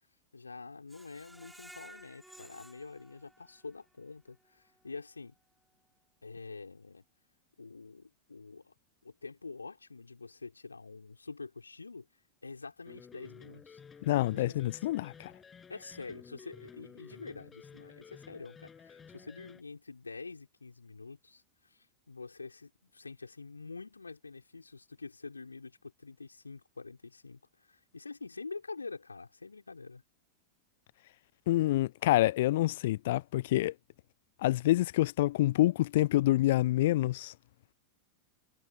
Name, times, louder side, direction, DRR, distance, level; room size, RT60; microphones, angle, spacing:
voice 1, 0.3-5.3 6.2-7.0 7.6-8.7 9.0-12.1 12.4-13.8 14.3-14.9 15.7-30.0, left 4 dB, 80° left, 5.6 m, -46 dB
Screech, 0.9-3.9 4.3-4.4 4.8-4.9, right 1 dB, 5° right, 3.5 m, -55 dB
sound 1, 12.9-19.6, left 6 dB, 20° left, 7.7 m, -53 dB
voice 2, 14.0-15.3 31.5-33.7 34.4-37.3, left 16 dB, 55° left, 0.3 m, -27 dB
figure-of-eight pair, 90°, 0 cm